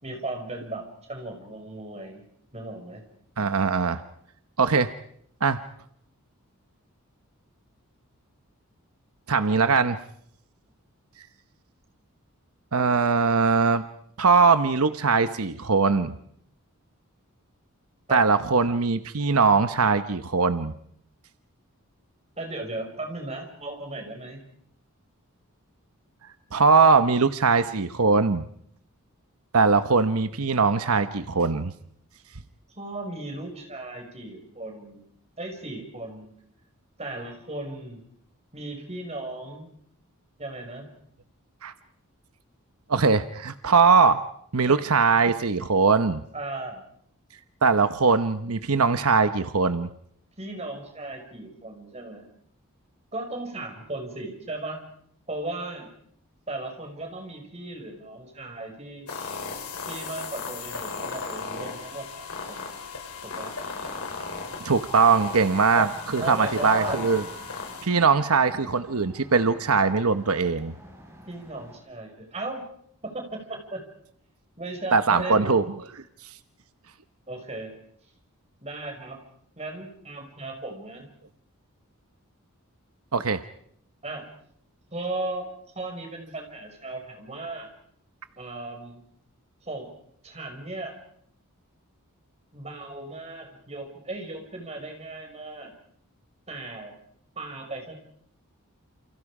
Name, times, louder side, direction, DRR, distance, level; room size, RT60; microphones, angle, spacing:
voice 1, 0.0-2.2 2.5-3.0 18.1-18.2 22.4-24.4 32.8-35.0 35.4-36.3 37.0-38.0 38.5-39.7 40.4-40.9 44.7-44.8 46.3-46.8 50.4-52.2 53.1-54.8 55.3-55.9 56.5-59.1 59.9-62.7 63.2-63.5 65.7-65.9 66.2-67.0 71.3-72.6 73.0-73.8 74.6-75.5 77.3-77.7 78.6-79.2 79.6-81.1 84.0-84.2 84.9-85.5 85.8-87.7 88.4-89.0 89.6-89.9 90.2-90.9 92.5-95.7 96.5-96.9 97.4-98.0, right 2 dB, 30° right, 4 dB, 5.7 m, -36 dB
voice 2, 3.4-4.0 4.6-4.9 5.4-5.6 9.3-10.0 12.7-13.8 14.2-16.2 18.1-20.7 26.5-28.4 29.5-31.7 41.6-41.7 42.9-44.2 44.5-46.2 47.6-49.9 64.6-67.2 67.8-70.7 74.9-75.7 83.1-83.4, right 4 dB, 75° right, 10 dB, 1.0 m, -21 dB
sound 1, 59.1-67.8, left 4 dB, 85° left, 6.8 m, -36 dB
sound 2, 63.6-71.7, equal, 15° right, 5.5 m, -47 dB
29.0 x 29.0 x 5.0 m, 0.68 s
head